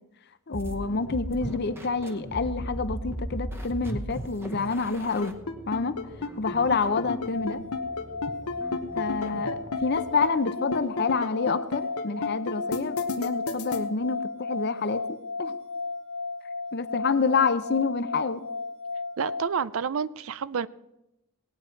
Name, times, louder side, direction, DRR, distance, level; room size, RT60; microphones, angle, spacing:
voice 1, 0.5-5.4 5.7-6.0 6.4-7.6 9.0-14.2 14.5-15.6 16.7-18.5, left 4 dB, 50° left, 12 dB, 0.7 m, -28 dB
sound 1, 0.5-10.2, right 1 dB, 10° right, 0.9 m, -38 dB
sound 2, 5.1-13.8, left 4 dB, 85° left, 1.1 m, -31 dB
sound 3, 7.3-19.4, left 3 dB, 50° right, 2.1 m, -34 dB
voice 2, 19.2-20.7, right 6 dB, 65° right, 17 dB, 0.4 m, -29 dB
18.5 x 9.3 x 4.5 m, 0.90 s
head